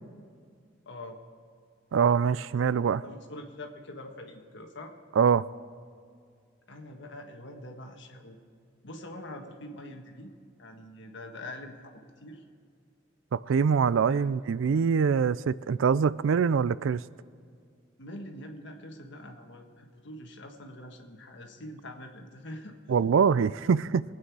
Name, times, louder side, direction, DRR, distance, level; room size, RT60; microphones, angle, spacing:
voice 1, 0.8-1.2 2.6-2.7 3.0-4.9 6.7-8.4 8.8-10.3 10.6-12.4 14.1-14.3 18.0-22.8, left 1 dB, 65° left, 1.6 m, -44 dB
voice 2, 1.9-3.0 5.2-5.4 13.3-17.0 22.9-24.0, right 6 dB, 85° right, 0.4 m, -24 dB
22.0 x 9.0 x 4.8 m
head